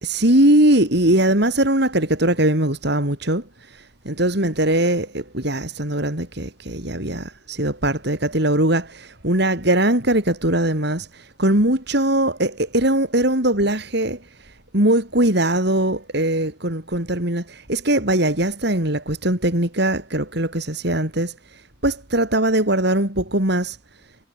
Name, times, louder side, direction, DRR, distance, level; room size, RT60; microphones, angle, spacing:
voice 1, 0.0-23.8, right 1 dB, 55° right, 4.2 m, -21 dB
head